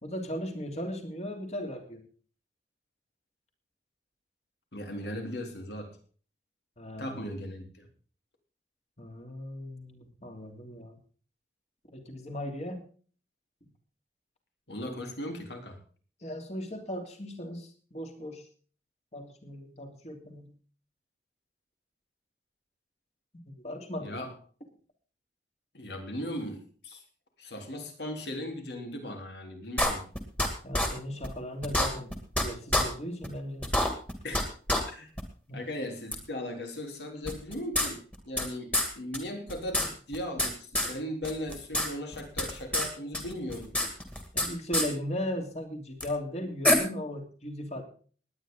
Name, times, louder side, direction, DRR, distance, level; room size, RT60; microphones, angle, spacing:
voice 1, 0.0-2.0 6.8-7.3 9.0-11.0 11.9-12.8 13.6-13.7 16.2-18.5 19.1-20.5 23.6-24.3 30.6-33.7 35.5-35.6 44.3-47.8, equal, 40° left, 4 dB, 2.9 m, -37 dB
voice 2, 4.7-6.0 7.0-7.9 14.7-15.8 24.0-24.3 25.7-27.0 27.4-30.1 34.2-34.5 34.9-35.1 35.5-43.7, left 1 dB, 75° left, 4 dB, 3.7 m, -38 dB
sound 1, 29.8-30.5 30.7-30.9 31.2-31.3 31.6-32.4 32.7-32.8 33.2-33.3 33.6-34.4 34.7-34.8 35.2-35.3 36.1-36.2 37.3-38.5 38.7-38.9 39.1-39.2 39.5-40.5 40.7-40.9 41.2-41.9 42.1-42.9 43.1-44.5 44.7-44.9 46.0-46.1 46.6-46.7, left 1 dB, 10° left, 2.3 m, -26 dB
19.5 x 9.9 x 3.8 m, 0.42 s
head